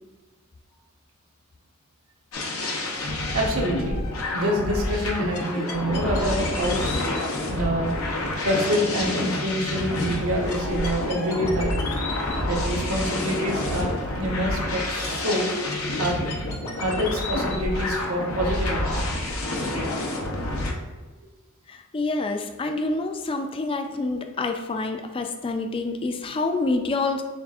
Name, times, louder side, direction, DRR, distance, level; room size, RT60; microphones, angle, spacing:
sound 1, 2.3-20.7, left 2 dB, 85° left, 0.7 m, -28 dB
voice 1, 3.3-4.0 4.3-6.8 7.5-7.9 8.4-11.8 12.5-15.5 16.0-16.3 16.8-19.0, equal, 75° right, -1 dB, 0.9 m, -26 dB
voice 2, 21.7-27.2, left 3 dB, 25° left, 6 dB, 0.3 m, -27 dB
7.0 x 2.5 x 2.4 m, 1.3 s
head